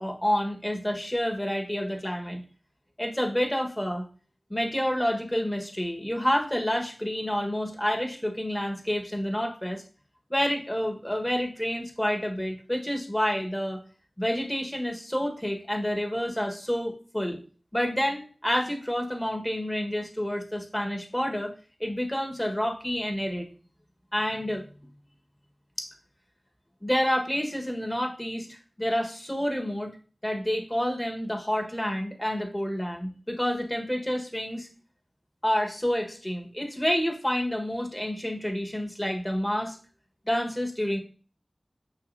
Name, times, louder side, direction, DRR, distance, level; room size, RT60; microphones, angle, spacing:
voice 1, 0.0-2.4 3.0-4.1 4.5-9.8 10.3-13.8 14.2-17.4 17.7-21.5 21.8-23.5 24.1-24.6 25.8-25.9 26.8-29.9 30.2-34.7 35.4-39.8 40.2-41.0, equal, 15° left, 2 dB, 1.5 m, -29 dB
6.5 x 5.8 x 2.8 m, 0.39 s
wide cardioid pair, 40°, 0 cm